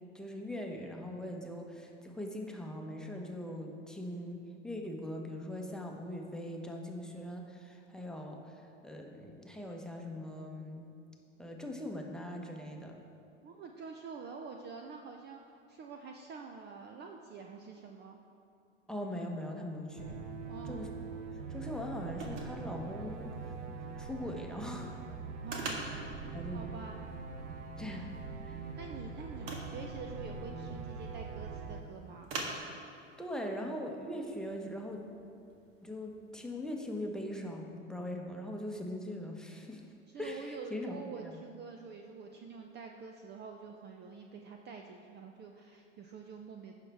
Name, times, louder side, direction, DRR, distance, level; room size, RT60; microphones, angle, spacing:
voice 1, 0.0-10.9 11.4-13.0 18.9-20.2 20.6-20.9 21.3-23.5 24.0-24.9 25.6-26.0 26.3-26.7 27.5-28.1 28.4-28.6 33.2-35.0 35.8-39.8 40.2-41.0 41.2-41.4, left 1 dB, ahead, 0 dB, 1.0 m, -41 dB
voice 2, 13.4-18.2 20.5-20.8 25.4-25.9 26.5-27.0 28.8-32.3 40.1-46.7, right 5 dB, 30° right, 3 dB, 0.6 m, -47 dB
sound 1, 20.0-31.8, right 4 dB, 75° right, 0.9 m, -43 dB
sound 2, 20.1-37.2, right 3 dB, 55° right, 1.6 m, -48 dB
16.0 x 5.7 x 3.4 m, 2.6 s
hypercardioid pair, 90°, 37 cm